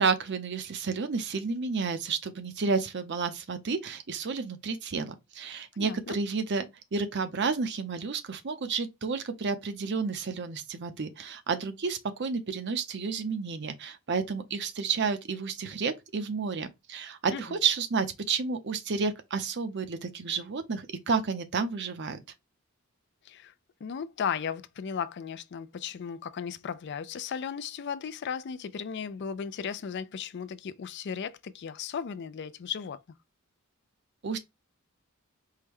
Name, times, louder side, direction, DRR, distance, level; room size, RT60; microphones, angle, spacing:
voice 1, 0.0-22.2 34.2-34.4, right 5 dB, 55° right, 0.6 m, -31 dB
voice 2, 5.7-6.2 17.3-17.6 23.3-23.5 23.8-33.0, left 7 dB, 55° left, 0.4 m, -36 dB
4.6 x 2.1 x 3.4 m
head